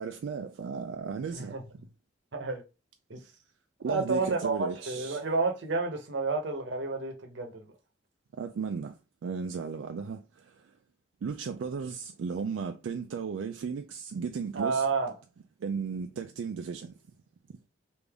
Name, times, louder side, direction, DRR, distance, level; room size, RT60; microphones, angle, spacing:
voice 1, 0.0-1.6 3.8-5.2 8.3-10.7 11.2-14.8 15.6-17.0, right 5 dB, 90° right, 0.3 m, -35 dB
voice 2, 1.3-1.6 2.3-2.6 3.1-3.2 3.8-7.7 14.5-15.1, right 3 dB, 70° right, 0.8 m, -30 dB
3.4 x 2.5 x 3.4 m
head